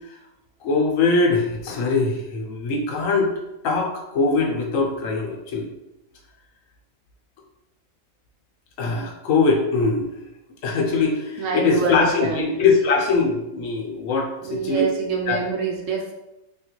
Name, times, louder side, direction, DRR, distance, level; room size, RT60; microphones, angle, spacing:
voice 1, 0.6-3.3 3.6-5.7 8.8-10.0 10.6-14.8 15.3-15.4, left 4 dB, 75° left, 1 dB, 1.0 m, -22 dB
voice 2, 11.4-12.6 14.4-16.1, right 4 dB, 75° right, 0 dB, 1.0 m, -25 dB
3.4 x 2.3 x 2.9 m, 0.93 s
omnidirectional pair, 1.4 m